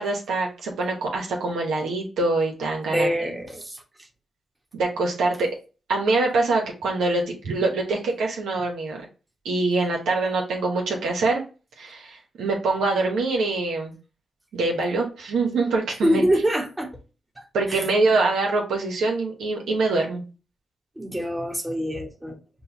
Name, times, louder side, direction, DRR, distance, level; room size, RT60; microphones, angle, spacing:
voice 1, 0.0-3.1 4.7-5.5 5.9-9.0 9.4-11.4 11.8-13.9 14.5-16.2 17.5-20.2, right 3 dB, 90° right, 1.0 m, -24 dB
voice 2, 2.9-3.8 16.0-16.9 17.7-17.8 21.0-22.4, equal, 20° right, 1.2 m, -24 dB
5.4 x 2.3 x 2.8 m
cardioid pair, 55°, 0 cm